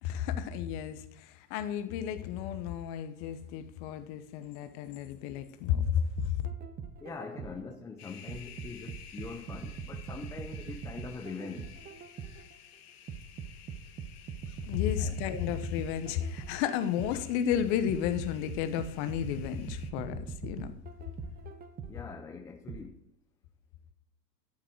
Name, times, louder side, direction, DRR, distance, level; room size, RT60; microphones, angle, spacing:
voice 1, 0.0-6.5 14.7-20.7, left 9 dB, 45° left, 10 dB, 1.2 m, -32 dB
sound 1, 6.2-7.7 8.3-12.5 13.1-17.3 17.9-22.1 22.7-22.8, right 6 dB, 20° right, 0.9 m, -42 dB
voice 2, 7.0-11.8 15.0-15.2 21.9-23.0, left 4 dB, 5° left, 4 dB, 0.4 m, -43 dB
sound 2, 8.0-19.9, left 8 dB, 65° left, 1.7 m, -53 dB
12.0 x 7.3 x 4.7 m, 0.75 s
hypercardioid pair, 110°, 48 cm